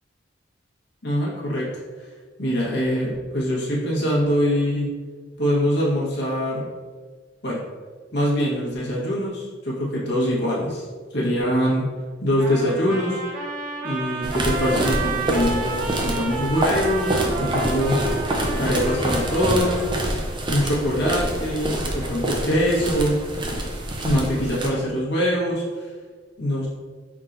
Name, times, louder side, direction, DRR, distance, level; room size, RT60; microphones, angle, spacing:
voice 1, 1.0-1.7 2.4-4.9 5.4-6.7 7.4-7.6 8.1-10.8 11.1-11.9 12.2-13.2 13.8-18.0 18.5-19.8 20.5-23.2 24.0-25.9 26.4-26.7, equal, 65° left, -6 dB, 1.3 m, -23 dB
Trumpet, 12.4-20.2, right 4 dB, 45° right, 0.9 m, -32 dB
sound 1, 14.2-24.7, right 1 dB, 25° right, 0.6 m, -26 dB
5.6 x 3.6 x 2.6 m, 1.5 s
head